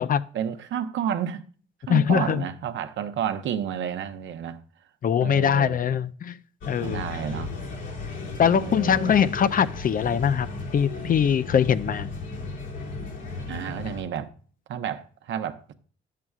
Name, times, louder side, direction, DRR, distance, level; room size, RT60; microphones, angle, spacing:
voice 1, 0.3-1.4 1.9-4.6 5.2-5.8 6.8-7.5 8.4-9.1 13.5-14.3 14.7-15.7, right 9 dB, 70° right, 0.8 m, -31 dB
voice 2, 1.9-2.4 5.0-6.4 6.7-7.0 8.4-10.5 10.7-12.1, left 8 dB, 45° left, 0.5 m, -22 dB
sound 1, 6.6-14.0, left 3 dB, 75° left, 2.3 m, -35 dB
11.0 x 7.6 x 2.3 m
cardioid pair, 90°, 20 cm